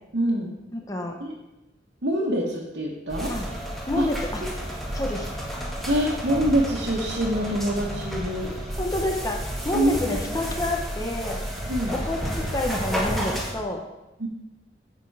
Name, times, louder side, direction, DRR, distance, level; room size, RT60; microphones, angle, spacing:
voice 1, 0.1-0.5 1.2-1.3 2.0-3.3 4.0-4.1 5.9-8.5 9.7-10.2 11.7-11.9 14.2-14.3, right 1 dB, 75° right, -4 dB, 1.3 m, -25 dB
voice 2, 0.7-1.2 3.3-3.5 3.9-4.4 4.9-5.3 8.8-11.4 11.9-13.8, left 1 dB, 20° left, 2 dB, 0.8 m, -29 dB
sound 1, 3.1-13.5, equal, ahead, 1.7 m, -31 dB
8.0 x 6.1 x 4.8 m, 0.99 s
head